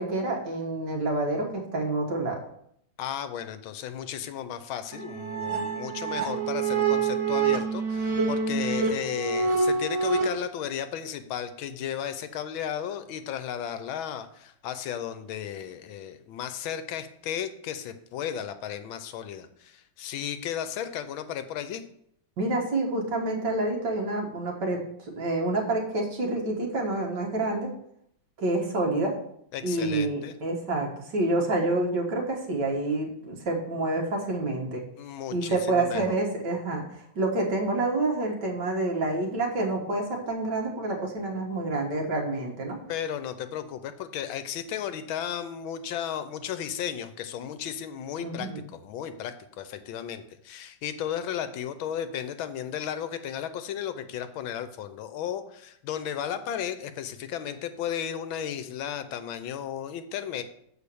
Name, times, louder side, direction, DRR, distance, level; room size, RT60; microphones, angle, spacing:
voice 1, 0.0-2.4 22.4-27.7 28.4-29.2 29.6-34.8 35.3-36.8 37.2-42.8 48.2-48.6, right 2 dB, 60° right, 0 dB, 2.0 m, -28 dB
voice 2, 3.0-21.8 29.5-30.4 35.0-36.2 42.9-60.4, left 9 dB, 80° left, 10 dB, 1.4 m, -34 dB
sound 1, 4.9-10.2, right 5 dB, 75° right, 2.3 m, -26 dB
7.0 x 4.5 x 6.8 m, 0.71 s
omnidirectional pair, 2.2 m